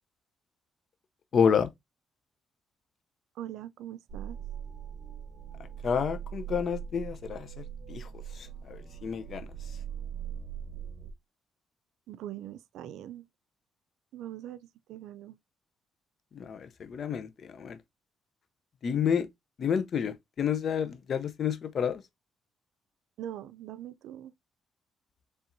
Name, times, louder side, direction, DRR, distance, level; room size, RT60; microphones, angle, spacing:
voice 1, 1.3-1.7 5.8-9.5 16.3-17.8 18.8-19.3 19.6-22.0, left 7 dB, 55° left, 0.7 m, -30 dB
voice 2, 3.4-4.4 12.1-13.3 14.1-15.4 23.2-24.3, right 12 dB, 85° right, 0.4 m, -42 dB
sound 1, 4.1-11.1, right 8 dB, 60° right, 1.2 m, -41 dB
4.3 x 3.5 x 2.6 m
cardioid pair, 90°, 0 cm